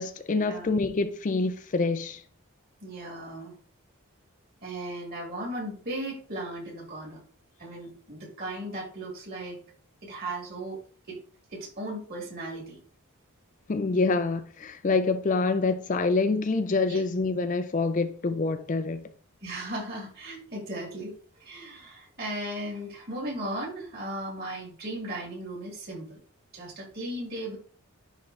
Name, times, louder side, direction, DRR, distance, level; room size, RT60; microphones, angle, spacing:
voice 1, 0.0-2.2 13.7-19.0, left 3 dB, 35° left, 0.4 m, -26 dB
voice 2, 2.8-3.5 4.6-7.2 7.6-9.6 10.0-10.8 11.1-11.2 11.5-12.8 16.9-17.0 19.4-26.2 26.5-27.6, right 1 dB, 45° right, 3.3 m, -36 dB
10.5 x 3.7 x 3.2 m
head